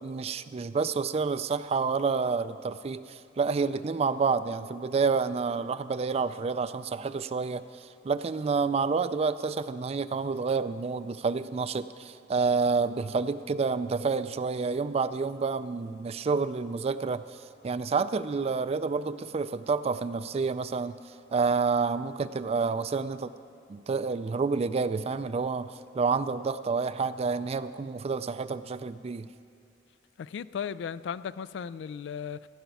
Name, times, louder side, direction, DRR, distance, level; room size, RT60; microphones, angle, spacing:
voice 1, 0.0-7.6 8.0-17.2 17.6-21.0 21.3-23.3 23.7-29.3, right 4 dB, 35° right, 14 dB, 0.3 m, -29 dB
voice 2, 30.2-32.5, left 7 dB, 70° left, 17 dB, 0.3 m, -36 dB
15.5 x 5.9 x 9.2 m, 2.4 s
head